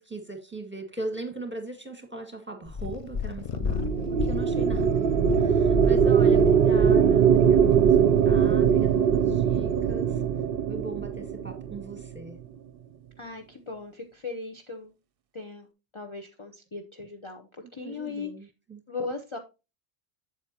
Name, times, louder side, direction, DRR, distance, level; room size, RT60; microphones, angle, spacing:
voice 1, 0.0-10.2 10.7-12.4 17.8-18.8, right 2 dB, 10° right, 4 dB, 1.8 m, -39 dB
Purr, 2.7-9.0 9.7-9.8, left 6 dB, 60° left, 0.3 m, -33 dB
sound 1, 3.5-12.1, right 7 dB, 60° right, 0.8 m, -21 dB
voice 2, 5.5-5.8 13.2-14.9 15.3-15.7 15.9-18.3 18.9-19.4, left 4 dB, 30° left, 4 dB, 0.9 m, -38 dB
8.0 x 8.0 x 2.8 m, 0.28 s
omnidirectional pair, 1.1 m